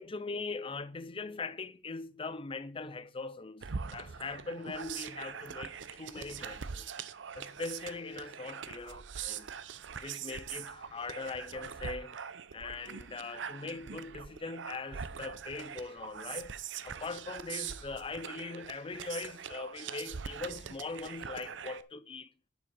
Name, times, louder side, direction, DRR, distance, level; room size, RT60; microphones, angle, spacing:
voice 1, 0.0-6.9 7.3-9.5 10.0-12.2 12.5-16.5 16.8-22.3, left 3 dB, 30° left, 0.6 m, -41 dB
sound 1, 3.6-21.8, right 7 dB, 70° right, 0.6 m, -43 dB
10.5 x 5.7 x 5.4 m
head